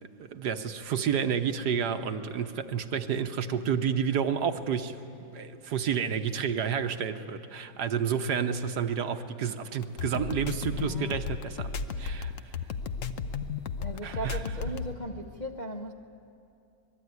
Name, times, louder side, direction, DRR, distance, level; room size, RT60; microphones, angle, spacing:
voice 1, 0.2-5.0 5.3-12.5 14.0-14.4, right 7 dB, 70° right, 8 dB, 1.5 m, -30 dB
sound 1, 9.8-14.9, left 5 dB, 55° left, 1.1 m, -34 dB
voice 2, 10.7-11.2 13.8-15.9, right 1 dB, 35° left, 0 dB, 0.8 m, -38 dB
26.5 x 20.5 x 9.6 m, 2.6 s
omnidirectional pair, 1.8 m